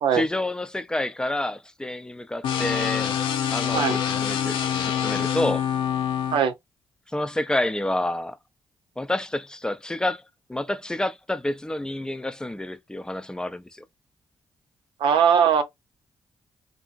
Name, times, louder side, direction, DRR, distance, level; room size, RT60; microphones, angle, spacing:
voice 1, 0.1-3.1 3.5-5.6 7.1-8.4 9.0-10.2 10.5-13.8, left 1 dB, 10° left, 0.4 m, -29 dB
sound 1, 2.4-6.4, left 9 dB, 90° left, 0.6 m, -25 dB
voice 2, 15.0-15.6, right 7 dB, 85° right, 0.7 m, -20 dB
2.8 x 2.5 x 2.4 m
cardioid pair, 65°, 9 cm